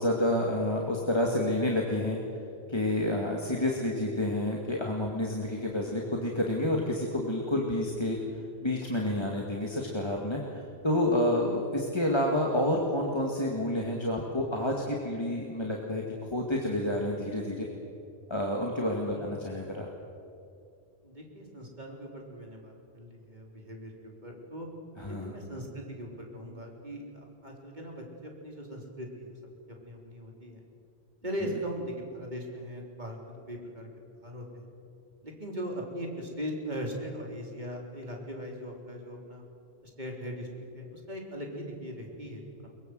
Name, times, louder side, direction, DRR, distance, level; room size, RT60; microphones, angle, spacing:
voice 1, 0.0-2.2 2.7-8.2 8.6-17.7 18.3-19.9 25.0-25.3, left 1 dB, 25° left, -1 dB, 2.3 m, -29 dB
voice 2, 21.0-24.7 25.1-29.3 29.8-30.6 31.2-33.2 33.5-33.9 34.2-34.6 35.2-39.4 39.8-40.5 40.7-42.7, equal, 45° right, 0 dB, 4.0 m, -39 dB
23.0 x 21.5 x 7.9 m, 2.5 s
omnidirectional pair, 1.1 m